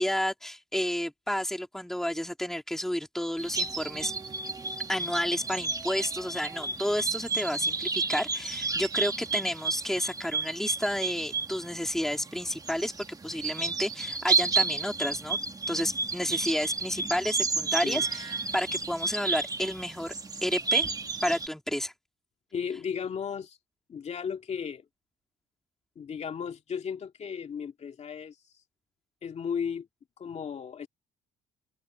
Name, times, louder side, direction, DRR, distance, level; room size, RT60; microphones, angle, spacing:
voice 1, 0.0-4.1 4.9-15.4 15.7-20.1 20.4-20.9 21.2-21.9, left 1 dB, ahead, 3.4 m, -31 dB
sound 1, 3.4-21.5, right 4 dB, 20° right, 1.7 m, -32 dB
voice 2, 22.5-23.6 23.9-24.8 26.0-28.3 29.2-29.9 30.2-30.9, left 7 dB, 40° left, 2.5 m, -35 dB
open air
cardioid pair, 110°, 17 cm